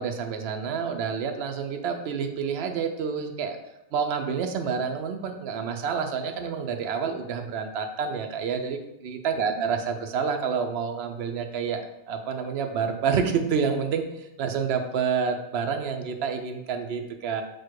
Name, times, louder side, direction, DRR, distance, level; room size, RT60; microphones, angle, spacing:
voice 1, 0.0-3.6 3.9-11.8 12.1-14.1 14.4-17.4, right 6 dB, 70° right, 5 dB, 0.8 m, -28 dB
4.3 x 2.2 x 4.5 m, 0.90 s
omnidirectional pair, 1.2 m